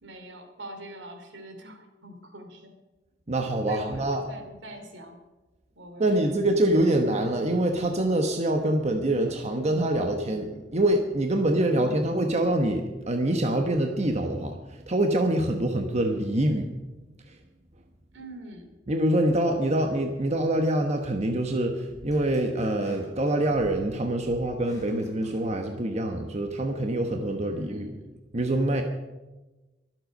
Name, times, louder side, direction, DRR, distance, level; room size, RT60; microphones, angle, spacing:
voice 1, 0.0-2.7 3.7-5.2 5.7-6.7 11.7-12.1 18.1-18.7 27.5-28.2, right 1 dB, 75° right, 6 dB, 2.9 m, -44 dB
voice 2, 3.3-4.3 6.0-16.7 17.3-17.4 18.9-28.0 28.3-28.8, right 1 dB, 35° right, 4 dB, 1.1 m, -25 dB
sound 1, 21.9-26.0, equal, 20° left, 5.7 m, -50 dB
23.5 x 7.9 x 5.3 m, 1.1 s
head